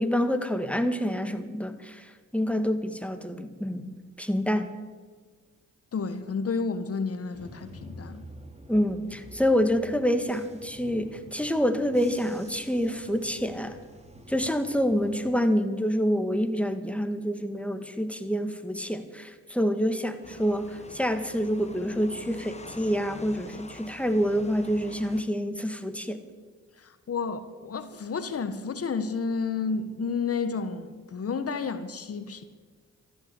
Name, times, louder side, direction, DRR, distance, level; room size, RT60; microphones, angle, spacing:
voice 1, 0.0-4.7 8.7-13.7 14.3-26.2, equal, 5° left, 1.8 m, -27 dB
voice 2, 5.9-8.2 14.4-14.5 26.8-32.4, left 5 dB, 50° left, 1.3 m, -31 dB
Bus / Engine, 7.3-15.3, equal, 20° right, 2.7 m, -48 dB
sound 1, 20.2-25.2, left 3 dB, 20° left, 1.4 m, -46 dB
14.0 x 11.5 x 8.2 m
supercardioid pair, 55°, 30 cm